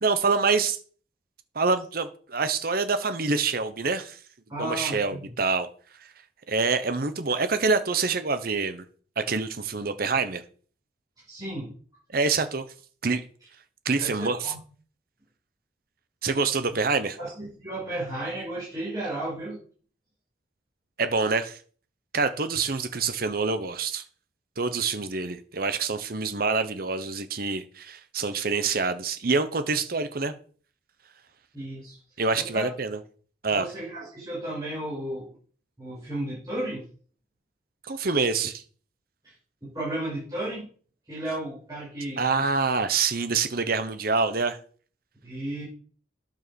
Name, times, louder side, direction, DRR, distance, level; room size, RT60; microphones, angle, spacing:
voice 1, 0.0-0.8 1.5-4.2 4.6-5.7 6.5-8.8 9.2-10.4 12.1-12.6 13.0-13.2 13.8-14.5 16.2-17.2 21.0-21.6 22.1-24.0 24.6-30.3 32.2-33.0 33.4-33.7 37.8-38.6 42.2-44.6, right 4 dB, 50° right, 1.0 m, -26 dB
voice 2, 4.5-5.3 11.3-11.7 14.0-14.6 17.2-19.6 31.5-32.0 32.3-32.7 33.5-35.4 35.8-36.9 39.2-39.3 39.6-40.7 41.1-42.5 45.2-45.6, right 1 dB, 20° right, 5.6 m, -34 dB
9.6 x 6.6 x 7.0 m
head